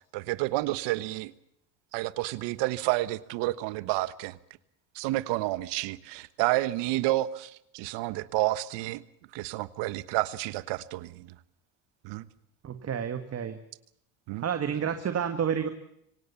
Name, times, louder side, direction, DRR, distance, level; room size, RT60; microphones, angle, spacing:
voice 1, 0.1-1.3 1.9-4.4 4.9-9.0 9.3-11.3 12.0-12.3 14.3-14.4, right 17 dB, 75° right, 16 dB, 1.3 m, -30 dB
voice 2, 12.6-13.6 14.4-15.7, right 8 dB, 35° right, 8 dB, 1.9 m, -30 dB
25.5 x 17.5 x 7.1 m, 0.75 s
cardioid pair, 120°, 43 cm